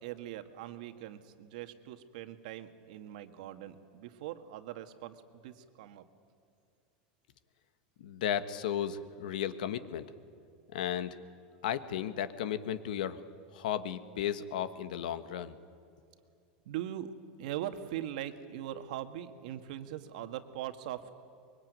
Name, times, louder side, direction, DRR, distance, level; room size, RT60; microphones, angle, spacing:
voice 1, 0.0-6.0 16.7-17.1 17.4-21.1, right 12 dB, 70° right, 8 dB, 1.8 m, -41 dB
voice 2, 8.0-10.1 10.7-11.1 11.6-13.2 13.5-15.6, left 10 dB, 85° left, 12 dB, 1.5 m, -34 dB
24.5 x 23.0 x 9.4 m, 2.4 s
supercardioid pair, 160°, 4 cm